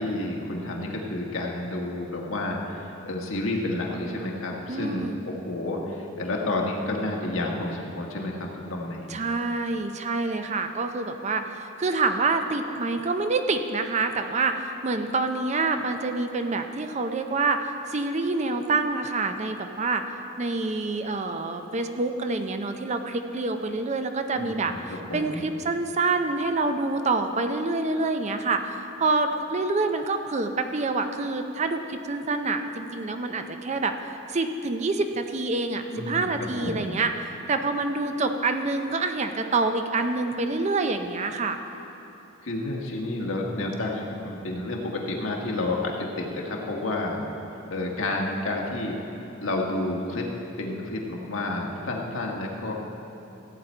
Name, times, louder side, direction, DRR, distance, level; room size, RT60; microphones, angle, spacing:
voice 1, 0.0-9.1 24.3-25.5 35.9-37.0 42.4-47.2 47.5-50.3 50.6-52.7, left 2 dB, 75° left, -1 dB, 1.4 m, -30 dB
voice 2, 4.7-5.2 9.1-20.0 20.4-33.9 34.3-41.6, right 3 dB, 35° right, 7 dB, 0.5 m, -27 dB
15.0 x 8.5 x 4.4 m, 2.9 s
head